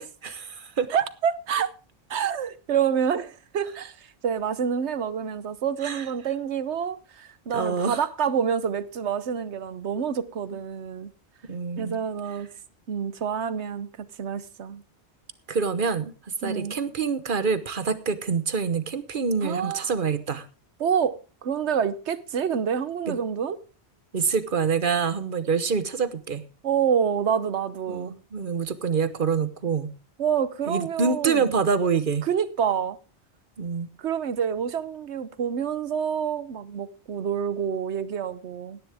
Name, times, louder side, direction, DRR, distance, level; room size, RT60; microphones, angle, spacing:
voice 1, 0.0-0.9 5.8-6.1 7.5-8.0 11.5-12.0 15.5-16.1 16.4-20.5 23.1-23.2 24.1-26.4 27.9-29.9 30.7-32.3 33.6-33.9, right 5 dB, 50° right, 1.2 m, -26 dB
voice 2, 0.9-1.7 2.1-11.1 11.8-12.5 12.9-14.8 16.4-16.8 19.4-19.9 20.8-23.6 26.6-28.1 30.2-31.6 32.2-33.0 34.0-38.8, right 7 dB, 90° right, 1.2 m, -27 dB
17.0 x 11.0 x 3.5 m
omnidirectional pair, 1.1 m